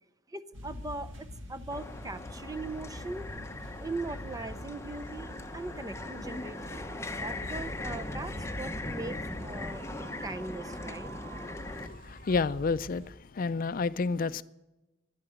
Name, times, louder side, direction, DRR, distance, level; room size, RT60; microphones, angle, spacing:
voice 1, 0.3-3.3 3.8-6.8 7.1-11.1, right 2 dB, 20° right, 0.6 m, -40 dB
sound 1, 0.5-13.1, left 1 dB, 85° right, 2.4 m, -45 dB
sound 2, 1.7-11.9, left 2 dB, 15° left, 0.8 m, -40 dB
Wind, 4.5-12.6, right 6 dB, 55° right, 1.1 m, -53 dB
voice 2, 11.6-14.4, left 4 dB, 45° left, 0.4 m, -30 dB
11.5 x 10.5 x 9.1 m
head